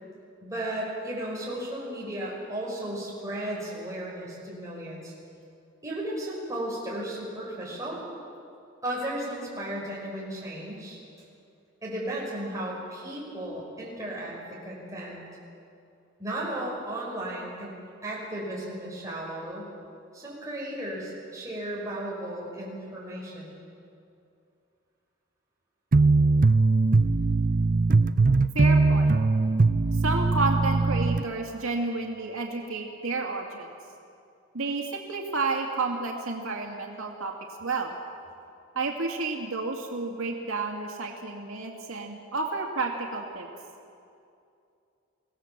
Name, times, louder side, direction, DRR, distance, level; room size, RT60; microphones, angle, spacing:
voice 1, 0.4-5.1 5.8-8.0 8.8-11.0 11.8-15.2 16.2-17.8 18.0-19.7 20.1-23.5, right 1 dB, 15° right, -5 dB, 6.0 m, -35 dB
sound 1, 25.9-31.2, right 3 dB, 40° right, 0.5 m, -21 dB
voice 2, 28.5-29.2 30.0-33.7 34.5-37.3 37.6-38.0 38.8-43.5, right 3 dB, 90° right, 1 dB, 2.3 m, -31 dB
25.0 x 17.0 x 7.4 m, 2.5 s
head